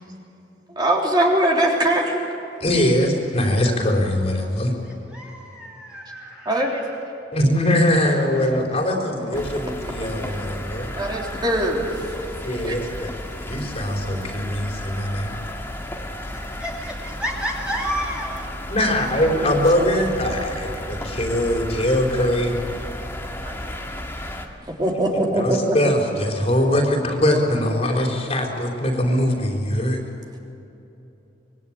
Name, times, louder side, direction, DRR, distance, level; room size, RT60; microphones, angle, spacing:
voice 1, 0.7-2.3 6.5-6.8 10.2-10.4 11.0-11.9 12.6-12.8 23.4-23.5 24.8-25.9, right 1 dB, 25° right, -1 dB, 3.7 m, -21 dB
voice 2, 2.6-4.7 7.3-10.9 12.4-13.1 13.4-15.3 18.7-22.5 25.4-30.0, left 1 dB, 35° left, 1 dB, 4.2 m, -22 dB
voice 3, 5.1-6.6 16.6-18.5, equal, 5° right, -4 dB, 2.9 m, -30 dB
sound 1, 9.3-24.5, left 1 dB, 15° left, 2.1 m, -33 dB
26.0 x 22.0 x 8.9 m, 2.9 s
head